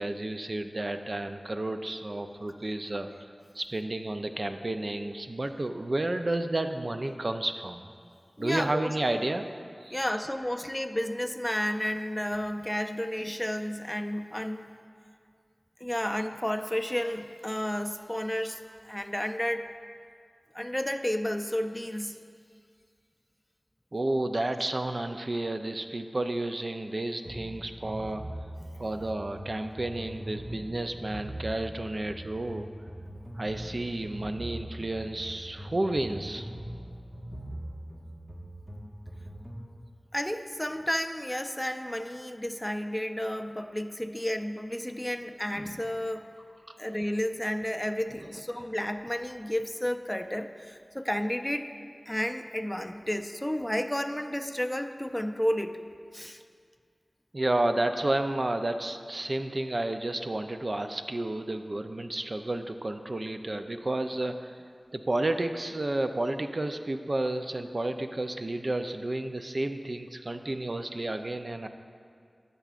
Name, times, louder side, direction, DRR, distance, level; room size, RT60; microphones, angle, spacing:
voice 1, 0.0-7.9 8.4-9.5 9.8-10.0 23.9-28.2 28.8-32.7 33.4-36.5 46.7-46.8 57.3-64.6 64.9-71.7, right 2 dB, 55° right, 7 dB, 0.4 m, -31 dB
voice 2, 8.4-8.9 9.9-14.6 15.8-19.7 20.5-22.2 40.1-46.3 46.8-51.7 52.1-55.8 56.1-56.4, left 1 dB, 15° left, 7 dB, 0.4 m, -32 dB
sound 1, 27.3-39.7, right 1 dB, 25° right, 1.5 m, -41 dB
14.0 x 6.8 x 2.5 m, 2.2 s
wide cardioid pair, 40°, 0 cm